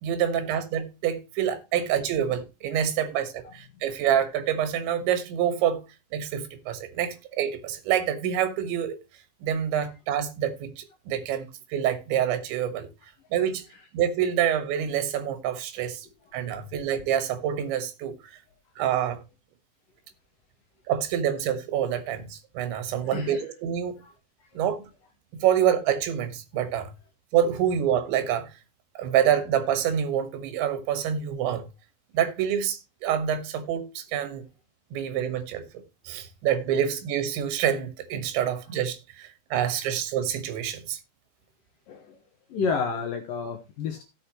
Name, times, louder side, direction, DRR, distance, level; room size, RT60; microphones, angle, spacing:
voice 1, 0.0-5.8 6.1-9.0 9.4-12.9 13.3-13.6 13.9-16.1 16.3-18.2 18.8-19.2 20.9-24.0 24.6-24.8 25.3-26.9 27.3-28.5 29.0-31.6 32.1-34.5 34.9-35.6 36.1-41.0, right 9 dB, 80° right, 3.7 m, -27 dB
voice 2, 23.1-23.4 24.0-24.1 41.9-42.2 42.5-44.0, left 5 dB, 70° left, 2.2 m, -30 dB
16.0 x 6.7 x 3.0 m
omnidirectional pair, 5.2 m